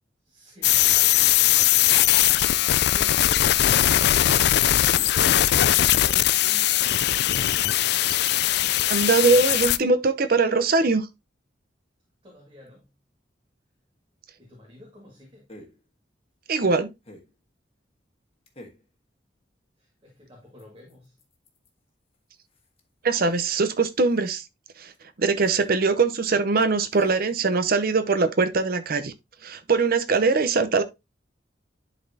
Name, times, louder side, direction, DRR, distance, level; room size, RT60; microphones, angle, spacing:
voice 1, 0.2-0.8 2.9-3.6 4.5-6.9 12.2-12.8 14.4-15.5 19.8-21.2 25.4-25.5, left 1 dB, 30° right, 1.8 m, -49 dB
sound 1, 0.6-9.8, left 13 dB, 60° left, 0.4 m, -20 dB
voice 2, 8.9-11.1 16.5-16.9 23.0-24.4 24.8-24.9 25.2-29.1 29.4-30.8, right 4 dB, 55° right, 0.7 m, -22 dB
sound 2, 12.7-12.8 15.5-15.9 17.0-17.4 18.5-18.9 20.6-21.8 22.1-22.2 22.5-23.8 24.1-24.4 24.9-25.0 25.4-25.7 26.1-26.2 26.9-27.4, left 1 dB, 35° left, 1.4 m, -48 dB
11.0 x 4.1 x 2.7 m
head